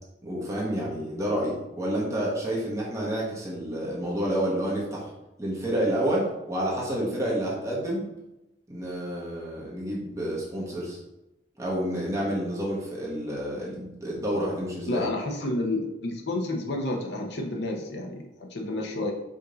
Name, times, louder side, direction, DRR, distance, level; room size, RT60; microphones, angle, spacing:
voice 1, 0.2-5.1 5.4-8.0 8.7-11.0 11.6-15.0, right 1 dB, 15° right, -5 dB, 1.1 m, -29 dB
voice 2, 14.9-19.1, left 2 dB, 65° left, 1 dB, 0.7 m, -30 dB
5.1 x 2.6 x 3.9 m, 0.95 s
head